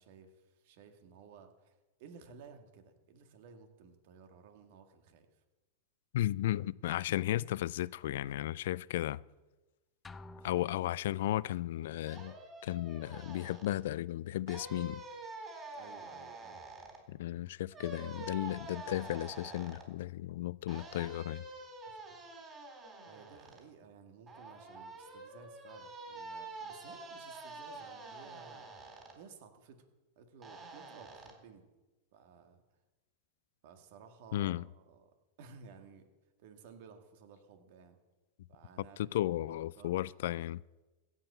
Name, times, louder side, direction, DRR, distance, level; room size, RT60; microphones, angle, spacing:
voice 1, 0.0-5.4 10.4-10.7 15.7-16.6 23.1-28.7 29.2-29.9 30.2-31.7 32.1-32.6 33.6-35.1 35.4-36.1 36.4-38.0 38.5-39.2 39.4-40.0, right 5 dB, 65° right, 1.8 m, -56 dB
voice 2, 6.1-9.2 10.4-12.3 12.6-15.0 17.1-21.4 34.3-34.6 38.8-40.6, left 14 dB, 70° left, 0.3 m, -34 dB
sound 1, 10.0-11.5, left 2 dB, 20° left, 0.6 m, -52 dB
sound 2, 12.1-13.8 14.5-17.0 17.7-19.9 20.7-23.6 24.3-29.1 30.4-31.3, right 2 dB, 25° right, 4.0 m, -47 dB
15.5 x 5.7 x 7.9 m
hypercardioid pair, 105°, 0 cm